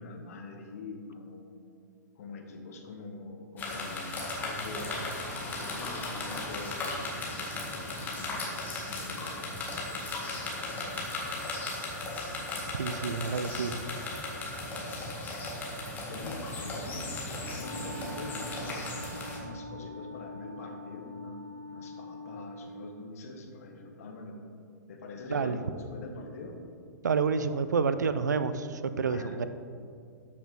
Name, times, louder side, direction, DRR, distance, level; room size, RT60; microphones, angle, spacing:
voice 1, 0.0-1.5 2.1-5.0 5.5-10.7 14.8-15.1 16.1-24.4 24.9-26.6 29.0-29.4, left 3 dB, 50° left, 3 dB, 1.5 m, -44 dB
sound 1, 3.6-19.4, left 2 dB, 15° left, 1.9 m, -36 dB
voice 2, 12.8-13.7 25.3-25.6 27.0-29.5, right 5 dB, 65° right, 12 dB, 0.5 m, -29 dB
Wind instrument woodwind instrument, 17.4-22.8, equal, 5° right, 1.3 m, -44 dB
13.0 x 6.2 x 4.1 m, 2.4 s
figure-of-eight pair, 110°, 10 cm